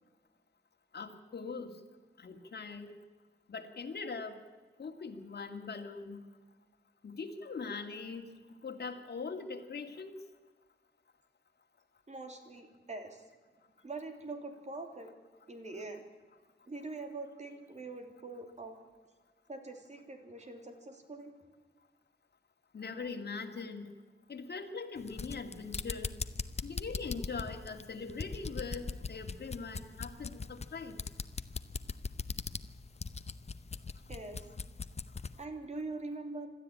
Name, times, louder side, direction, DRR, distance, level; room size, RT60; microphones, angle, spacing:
voice 1, 0.9-1.8 2.2-2.9 3.5-4.4 4.8-6.2 7.0-8.3 8.6-10.2 22.7-23.9 24.3-26.1 26.6-31.0, left 4 dB, 60° left, 4 dB, 2.3 m, -41 dB
voice 2, 12.1-13.2 13.8-15.1 15.5-16.0 16.7-18.7 19.5-21.3 34.1-34.5 35.4-36.5, right 3 dB, 40° right, 5 dB, 3.0 m, -43 dB
sound 1, 25.0-35.4, left 4 dB, 35° left, 0.7 m, -40 dB
26.5 x 13.0 x 8.7 m, 1.4 s
wide cardioid pair, 160°, 19 cm